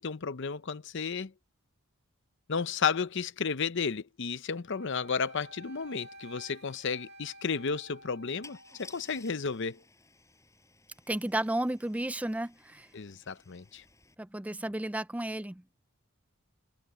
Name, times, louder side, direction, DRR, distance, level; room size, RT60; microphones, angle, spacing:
voice 1, 0.0-1.3 2.5-9.8 12.9-13.8, left 5 dB, 55° left, 0.7 m, -33 dB
Wind instrument woodwind instrument, 4.7-8.9, right 1 dB, 50° right, 1.8 m, -52 dB
Car / Engine starting / Idling, 5.8-5.9 6.2-6.4 8.4-14.1, left 3 dB, 15° left, 5.4 m, -57 dB
voice 2, 11.1-12.9 14.2-15.6, right 1 dB, 5° right, 0.4 m, -33 dB
head